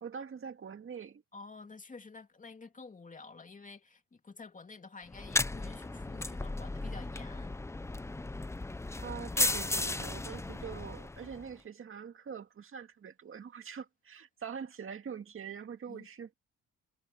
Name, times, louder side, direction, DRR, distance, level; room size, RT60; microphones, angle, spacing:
voice 1, 0.0-1.2 9.0-16.3, right 7 dB, 45° right, 2.1 m, -44 dB
voice 2, 1.3-7.6 15.9-16.1, left 4 dB, 25° left, 2.6 m, -50 dB
sound 1, 5.1-11.5, left 2 dB, 10° left, 0.6 m, -35 dB
cardioid pair, 90°, 30 cm